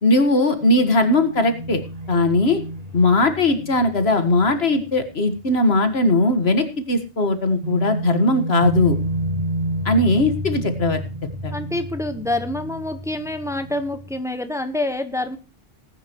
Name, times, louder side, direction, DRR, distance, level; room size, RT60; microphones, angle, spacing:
voice 1, 0.0-1.8 2.1-2.6 2.9-9.0 9.9-11.0 11.4-11.5, left 2 dB, 80° left, 9 dB, 2.0 m, -19 dB
sound 1, 0.6-6.0 6.3-6.4 7.6-14.2, right 1 dB, 40° right, 1.6 m, -30 dB
voice 2, 11.5-15.4, left 1 dB, 5° right, 9 dB, 1.2 m, -27 dB
19.0 x 9.9 x 3.1 m, 0.32 s
omnidirectional pair, 1.0 m